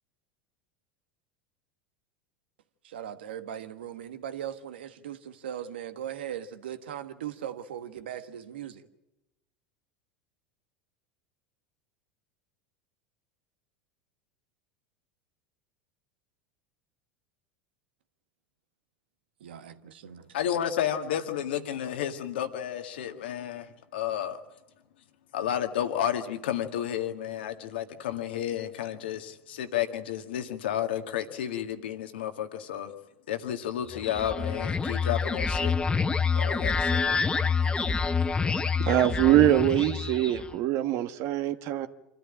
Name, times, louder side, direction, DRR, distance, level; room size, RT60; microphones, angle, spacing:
voice 1, 2.8-8.8 19.4-20.2, right 10 dB, 80° right, 1.4 m, -39 dB
voice 2, 20.3-24.4 25.3-32.9 33.3-35.7 36.4-37.2, left 10 dB, 80° left, 1.8 m, -31 dB
sound 1, 33.9-40.5, left 5 dB, 15° left, 0.8 m, -27 dB
voice 3, 38.8-41.9, right 13 dB, 55° right, 1.4 m, -23 dB
25.5 x 14.0 x 8.9 m
hypercardioid pair, 95°, 6 cm